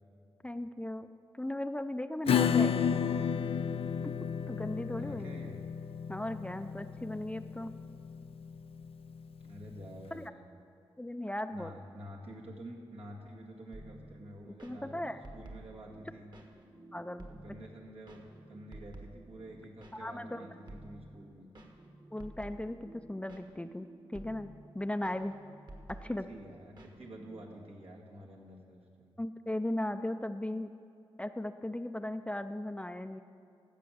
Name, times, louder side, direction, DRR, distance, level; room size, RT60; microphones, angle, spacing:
voice 1, 0.4-1.1 1.4-2.9 4.0-4.1 4.5-5.4 6.1-7.7 10.1-10.3 11.0-11.7 14.6-15.2 16.9-17.3 19.9-20.4 22.1-25.3 25.9-26.3 29.2-30.7 31.2-33.2, left 1 dB, 10° left, 9 dB, 0.5 m, -37 dB
Acoustic guitar / Strum, 2.3-9.5, left 7 dB, 70° left, 0.4 m, -32 dB
voice 2, 5.0-5.6 9.4-10.4 11.5-16.3 17.3-21.5 26.0-29.1, equal, 75° right, -2 dB, 1.9 m, -49 dB
sound 1, 13.7-27.6, right 1 dB, 45° right, 1.6 m, -52 dB
14.5 x 5.1 x 8.0 m, 2.6 s
cardioid pair, 50°, 10 cm